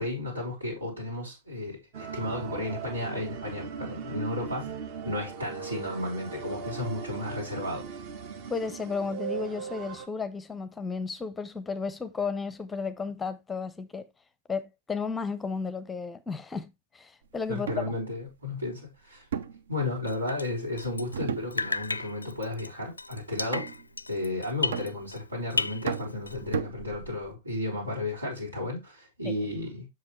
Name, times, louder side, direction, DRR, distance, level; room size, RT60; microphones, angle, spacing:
voice 1, 0.0-4.8 5.0-7.8 17.5-19.3 19.7-23.7 24.1-29.9, left 2 dB, 85° right, 3.6 m, -33 dB
sound 1, 1.9-10.1, right 6 dB, 45° right, 1.2 m, -39 dB
voice 2, 8.5-14.1 14.5-17.7, left 5 dB, 10° left, 0.6 m, -33 dB
sound 2, 17.5-18.0 19.3-20.4 21.1-22.0 22.3-22.7 23.5-24.0 24.7-25.4 25.9-27.3, right 6 dB, 65° right, 0.7 m, -35 dB
Drip, 20.1-21.3 21.5-25.2 25.5-26.5, left 3 dB, 85° left, 0.3 m, -34 dB
7.4 x 6.6 x 3.1 m
figure-of-eight pair, 105°, 0 cm